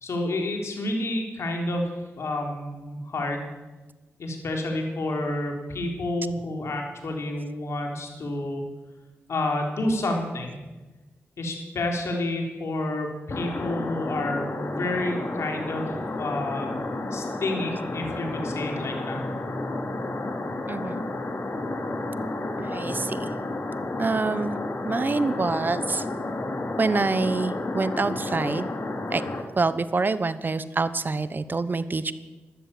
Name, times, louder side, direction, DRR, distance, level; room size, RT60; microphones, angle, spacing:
voice 1, 0.0-1.9 2.2-3.5 4.2-8.6 9.3-10.6 11.4-15.9 16.2-16.7 17.1-19.2, left 1 dB, 70° left, 2 dB, 3.8 m, -29 dB
sound 1, 13.3-29.4, left 2 dB, 55° left, 2.7 m, -31 dB
voice 2, 20.7-21.0 22.6-23.3 24.0-24.6 24.8-26.0 26.8-28.7 29.1-29.2 29.6-32.1, right 3 dB, 40° right, 14 dB, 1.0 m, -26 dB
13.0 x 13.0 x 8.5 m, 1.2 s
cardioid pair, 55°, 5 cm